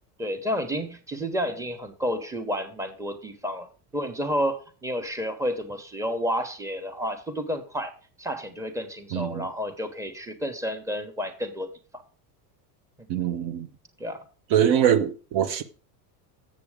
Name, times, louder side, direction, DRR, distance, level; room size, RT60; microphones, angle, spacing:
voice 1, 0.2-7.9 8.2-11.7 11.9-12.0 13.0-13.1 14.0-14.2, equal, 5° right, 1.2 m, -30 dB
voice 2, 9.1-9.5 13.1-13.7 14.5-15.6, right 9 dB, 55° right, 1.0 m, -23 dB
7.7 x 6.8 x 4.9 m
supercardioid pair, 115°, 49 cm